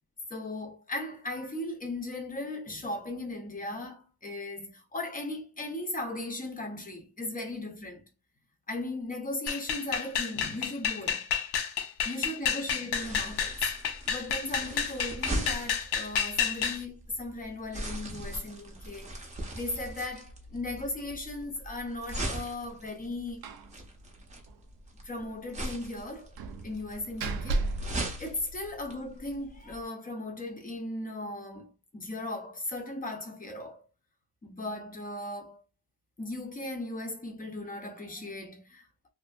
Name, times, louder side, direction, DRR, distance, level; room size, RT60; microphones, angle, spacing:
voice 1, 0.3-8.0 8.7-11.3 12.0-13.6 14.1-19.1 19.5-23.4 25.0-26.3 26.6-27.7 28.2-33.9 34.4-35.6 36.2-38.9, left 2 dB, 20° left, 0.6 m, -37 dB
sound 1, 9.5-16.8, left 8 dB, 80° left, 0.6 m, -30 dB
sound 2, 13.0-29.8, right 1 dB, 20° right, 0.7 m, -40 dB
Slam, 23.4-23.7 24.0-24.1 24.5-24.6 26.4-29.0, right 2 dB, 70° right, 0.5 m, -34 dB
2.6 x 2.6 x 2.3 m
wide cardioid pair, 145°, 38 cm